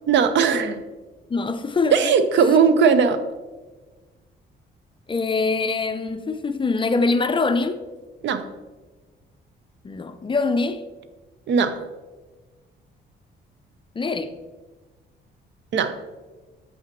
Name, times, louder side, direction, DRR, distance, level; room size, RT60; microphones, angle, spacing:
voice 1, 0.1-0.8 1.9-3.2 8.2-8.5 11.5-11.8 15.7-16.0, right 6 dB, 65° right, 0.6 m, -18 dB
voice 2, 1.3-2.1 5.1-7.8 9.8-10.8 14.0-14.3, left 3 dB, 25° left, 0.4 m, -23 dB
7.8 x 5.7 x 3.0 m
cardioid pair, 90°, 20 cm